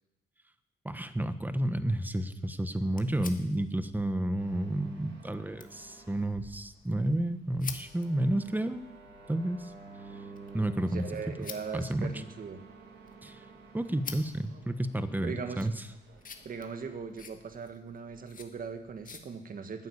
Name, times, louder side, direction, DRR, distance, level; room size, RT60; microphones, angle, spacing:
voice 1, 0.8-8.9 9.3-9.7 10.5-11.1 11.7-12.1 13.2-13.4 13.7-15.7, right 1 dB, 10° right, 11 dB, 1.2 m, -31 dB
sound 1, 2.5-19.2, left 5 dB, 55° left, 1.7 m, -50 dB
sound 2, 4.4-17.0, right 3 dB, 85° right, 2.3 m, -52 dB
voice 2, 10.9-12.6 15.2-15.7 16.4-19.9, right 5 dB, 55° right, 8 dB, 1.7 m, -39 dB
12.0 x 9.4 x 8.6 m, 0.95 s
cardioid pair, 75°, 17 cm